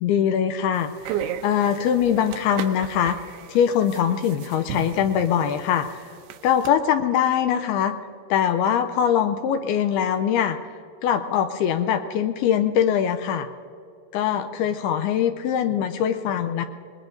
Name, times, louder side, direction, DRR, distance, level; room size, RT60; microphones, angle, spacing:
voice 1, 0.0-6.0 6.4-7.9 8.3-10.6 11.0-13.5 14.1-16.7, left 9 dB, 80° left, 8 dB, 2.4 m, -22 dB
sound 1, 0.8-6.7, right 9 dB, 80° right, 2.5 m, -35 dB
25.0 x 20.5 x 2.6 m, 2.4 s
omnidirectional pair, 4.8 m